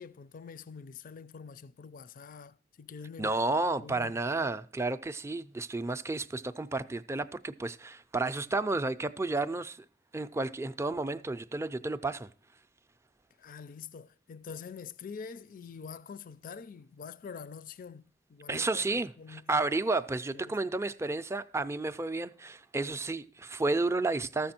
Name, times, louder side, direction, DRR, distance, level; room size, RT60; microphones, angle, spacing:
voice 1, 0.0-4.5 13.4-18.9 19.2-19.6 20.3-20.5, left 6 dB, 50° left, 0.4 m, -46 dB
voice 2, 3.2-9.8 10.1-12.3 18.5-24.5, right 3 dB, 15° right, 0.4 m, -32 dB
14.0 x 6.9 x 4.3 m
head